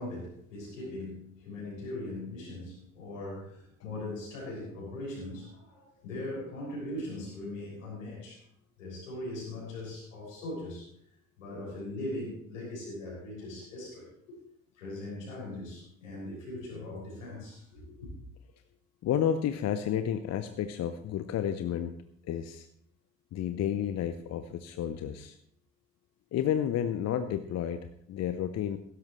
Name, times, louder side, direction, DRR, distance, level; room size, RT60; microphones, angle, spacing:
voice 1, 0.0-8.4 8.8-10.9 11.4-14.4 14.8-18.1, left 1 dB, 75° left, -4 dB, 6.4 m, -40 dB
voice 2, 19.0-21.9 22.2-22.7 23.3-25.4 26.3-28.8, left 9 dB, 40° left, 10 dB, 0.8 m, -31 dB
16.5 x 12.5 x 3.2 m, 0.68 s
figure-of-eight pair, 50°, 39 cm